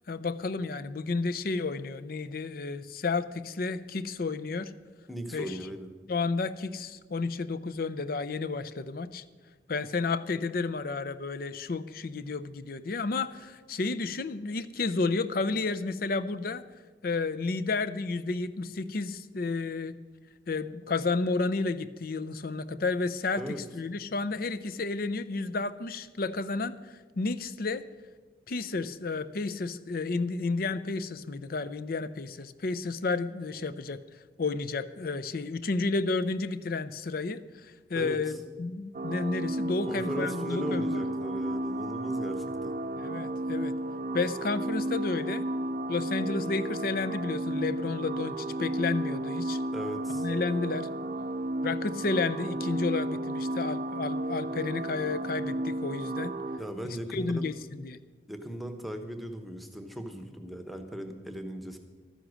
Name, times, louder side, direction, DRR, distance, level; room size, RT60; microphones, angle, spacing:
voice 1, 0.1-4.7 5.3-5.6 6.1-9.2 9.7-16.6 17.0-20.0 20.5-27.8 28.5-34.0 34.4-41.0 42.9-43.8 44.1-45.4 45.9-49.6 50.1-50.9 51.6-56.4 56.8-58.0, left 3 dB, 55° left, 14 dB, 0.5 m, -31 dB
voice 2, 5.1-5.9 23.4-23.6 37.9-38.2 39.9-42.8 49.7-50.3 56.6-57.5 58.3-61.8, equal, ahead, 6 dB, 1.0 m, -37 dB
sound 1, 38.9-56.6, right 1 dB, 45° right, 0.5 m, -33 dB
12.5 x 10.0 x 6.2 m, 1.4 s
head